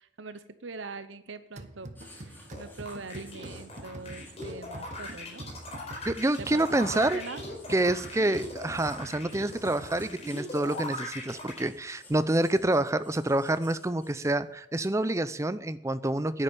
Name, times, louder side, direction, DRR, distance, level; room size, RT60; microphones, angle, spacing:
voice 1, 0.0-5.4 6.4-7.4, right 3 dB, 75° right, 12 dB, 0.9 m, -42 dB
sound 1, 1.6-10.5, right 1 dB, 40° right, 1.1 m, -45 dB
Writing, 2.0-14.5, left 1 dB, 10° left, 3.7 m, -55 dB
sound 2, 2.5-11.6, left 2 dB, 35° left, 4.3 m, -40 dB
voice 2, 6.1-7.2 7.7-16.4, right 1 dB, 15° right, 14 dB, 0.5 m, -27 dB
10.0 x 10.0 x 8.4 m, 0.82 s
head